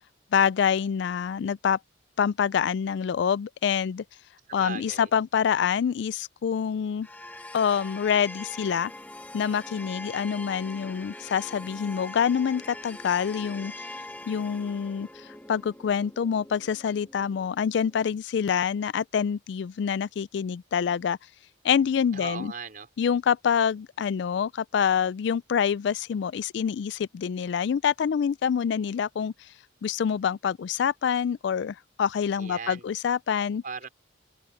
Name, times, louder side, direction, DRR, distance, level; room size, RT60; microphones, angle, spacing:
voice 1, 0.3-1.8 2.2-4.0 4.5-7.1 7.5-8.9 9.3-13.7 14.3-21.2 21.6-22.5 23.0-29.3 29.8-33.6, left 7 dB, 60° left, 0.3 m, -26 dB
voice 2, 4.5-5.1 22.1-22.9 32.3-32.8 33.6-33.9, right 5 dB, 45° right, 4.6 m, -38 dB
sound 1, 7.0-18.1, left 2 dB, 10° left, 1.2 m, -43 dB
open air
head